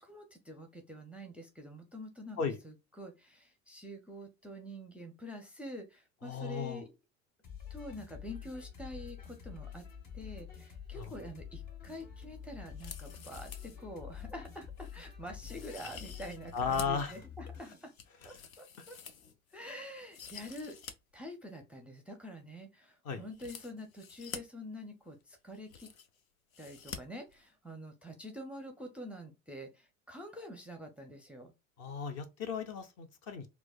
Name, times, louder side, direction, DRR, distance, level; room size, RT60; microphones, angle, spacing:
voice 1, 0.0-2.4 2.6-6.9 7.7-9.8 10.1-17.9 18.2-19.0 19.5-20.8 21.1-25.9 26.6-31.5, equal, 5° right, 0.5 m, -46 dB
voice 2, 6.2-6.8 10.9-11.1 16.5-17.2 23.0-23.2 31.8-33.5, left 6 dB, 40° left, 0.7 m, -35 dB
sound 1, 7.4-18.0, left 8 dB, 60° left, 1.6 m, -47 dB
sound 2, 12.7-13.8 14.2-14.3 14.8-14.9 15.4-17.0 17.5-19.6 20.0-20.9 21.2-21.3 23.3-24.4 25.2-25.3 25.5-26.2 26.5-27.0 27.3-27.4, left 7 dB, 80° left, 0.6 m, -48 dB
4.5 x 2.2 x 2.3 m
figure-of-eight pair, 75°, 40 cm